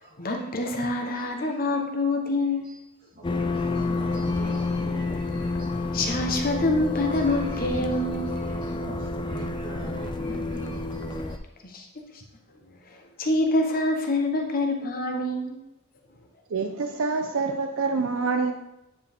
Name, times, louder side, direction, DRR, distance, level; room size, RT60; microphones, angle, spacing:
voice 1, 0.2-2.7 5.9-8.4 11.6-11.9 13.2-15.6, left 2 dB, 40° left, 3 dB, 0.9 m, -26 dB
voice 2, 3.1-5.7 7.4-7.5 8.4-11.4, right 1 dB, 40° right, -5 dB, 2.6 m, -41 dB
sound 1, 3.2-11.4, left 2 dB, 20° left, 0.4 m, -29 dB
voice 3, 16.5-18.5, right 4 dB, 65° right, 6 dB, 0.5 m, -26 dB
9.4 x 4.7 x 3.5 m, 0.88 s
head